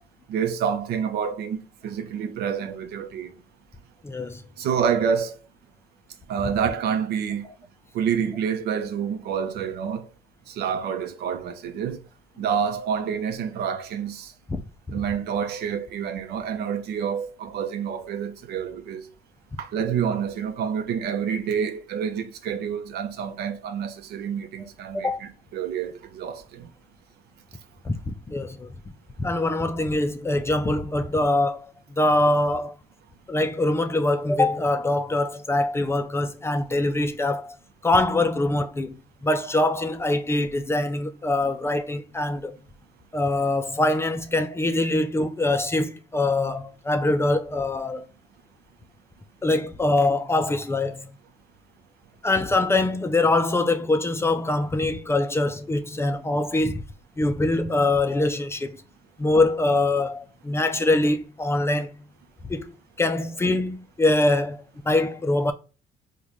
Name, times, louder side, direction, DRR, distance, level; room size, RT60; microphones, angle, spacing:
voice 1, 0.3-3.3 4.6-5.4 6.3-7.5 7.9-10.1 10.5-12.0 12.4-14.3 14.9-19.0 19.6-26.7, right 7 dB, 70° right, 0.6 m, -28 dB
voice 2, 4.0-4.4 14.5-14.6 24.9-25.2 27.8-28.7 29.2-32.8 33.3-37.6 37.8-42.6 43.1-48.0 49.4-51.1 52.2-56.8 57.2-58.8 59.2-62.0 62.5-65.5, left 2 dB, 15° left, 0.3 m, -23 dB
3.7 x 2.2 x 3.0 m
cardioid pair, 110°, 17 cm